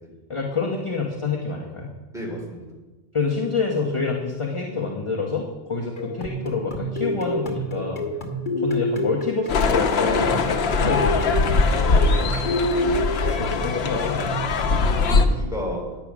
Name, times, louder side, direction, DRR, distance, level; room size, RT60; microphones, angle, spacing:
voice 1, 0.3-1.9 3.1-8.0 8.6-11.7 13.3-14.4, left 4 dB, 30° left, -1 dB, 1.1 m, -27 dB
voice 2, 2.1-2.7 8.1-8.2 12.0-12.3 14.6-15.8, equal, 5° right, -3 dB, 2.9 m, -33 dB
sound 1, 6.0-14.5, left 1 dB, 50° left, 1.5 m, -28 dB
sound 2, 9.5-15.3, left 4 dB, 75° left, 1.0 m, -21 dB
9.2 x 8.6 x 6.1 m, 1.2 s
omnidirectional pair, 1.1 m